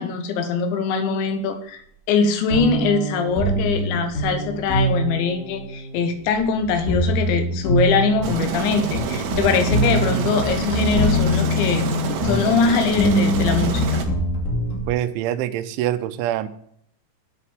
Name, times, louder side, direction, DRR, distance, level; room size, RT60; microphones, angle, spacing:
voice 1, 0.0-1.8 2.1-14.0, left 5 dB, 80° left, 7 dB, 3.4 m, -22 dB
sound 1, 2.5-14.9, equal, 25° left, 1.9 m, -24 dB
Aircraft, 8.2-14.0, right 6 dB, 75° right, 3.3 m, -27 dB
voice 2, 14.9-16.5, right 12 dB, 90° right, 11 dB, 3.1 m, -24 dB
9.8 x 5.0 x 7.1 m, 0.69 s
omnidirectional pair, 5.3 m